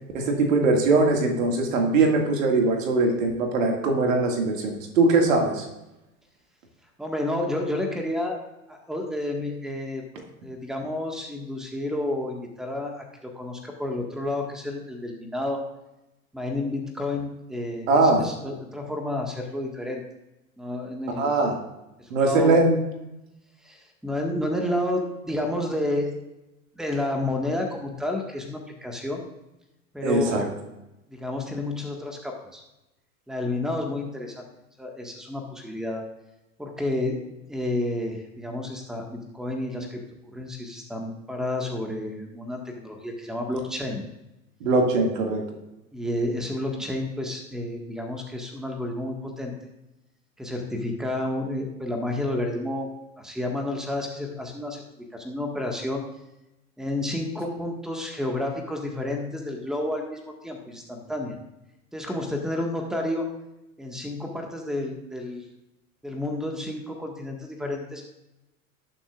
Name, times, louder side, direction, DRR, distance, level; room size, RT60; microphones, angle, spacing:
voice 1, 0.1-5.7 17.9-18.3 21.2-21.6 22.1-22.8 30.0-30.5 44.6-45.4, right 3 dB, 65° right, 2 dB, 2.2 m, -21 dB
voice 2, 7.0-8.4 8.7-15.6 16.3-20.0 20.6-21.3 22.0-22.6 23.6-26.1 26.8-29.2 29.9-30.5 31.1-32.6 33.3-34.4 34.8-36.0 36.6-37.2 37.5-40.0 40.3-44.0 45.9-49.5 50.4-52.9 53.2-56.1 56.8-61.4 61.9-63.3 63.8-65.4 66.0-68.0, left 1 dB, ahead, 2 dB, 1.7 m, -30 dB
18.5 x 7.2 x 2.5 m, 0.93 s
figure-of-eight pair, 85°, 42 cm